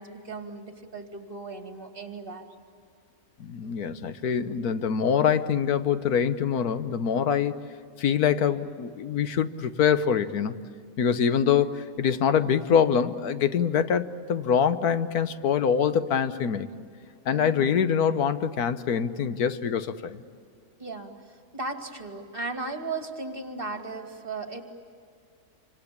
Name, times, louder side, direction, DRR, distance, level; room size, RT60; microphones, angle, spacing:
voice 1, 0.0-2.5 17.3-17.7 20.8-24.6, right 3 dB, 35° right, 4 dB, 2.6 m, -36 dB
voice 2, 3.4-7.6 8.0-10.6 11.0-16.7 17.2-20.2, left 7 dB, 85° left, 11 dB, 1.5 m, -24 dB
27.0 x 26.0 x 8.6 m, 2.2 s
omnidirectional pair, 1.6 m